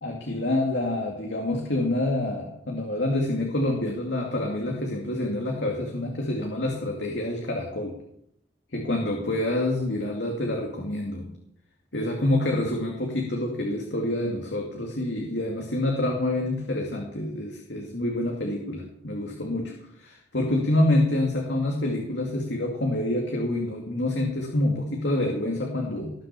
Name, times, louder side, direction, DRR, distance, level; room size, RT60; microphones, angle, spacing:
voice 1, 0.0-7.9 8.7-11.3 11.9-26.1, left 1 dB, 65° left, 0 dB, 2.5 m, -27 dB
19.5 x 7.7 x 7.0 m, 0.74 s
head